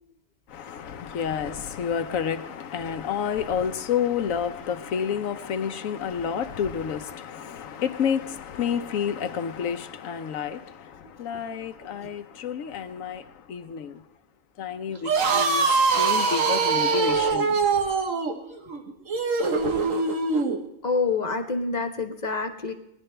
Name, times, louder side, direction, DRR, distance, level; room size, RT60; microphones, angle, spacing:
voice 1, 0.5-14.0 14.6-15.7 16.0-17.8, left 7 dB, 85° left, 1.1 m, -30 dB
sound 1, 14.9-20.6, right 4 dB, 80° right, 1.5 m, -23 dB
voice 2, 20.8-22.7, left 4 dB, 35° left, 1.0 m, -27 dB
19.0 x 11.0 x 3.3 m
omnidirectional pair, 1.3 m